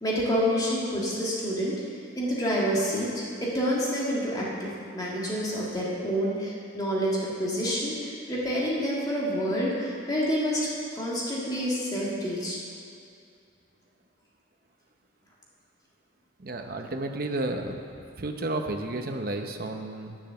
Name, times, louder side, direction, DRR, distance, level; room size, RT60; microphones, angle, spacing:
voice 1, 0.0-10.7 10.9-12.6, equal, 20° left, -5 dB, 1.7 m, -28 dB
voice 2, 16.4-17.8 18.2-20.2, right 2 dB, 50° right, 4 dB, 0.8 m, -32 dB
9.8 x 7.3 x 6.8 m, 2.4 s
head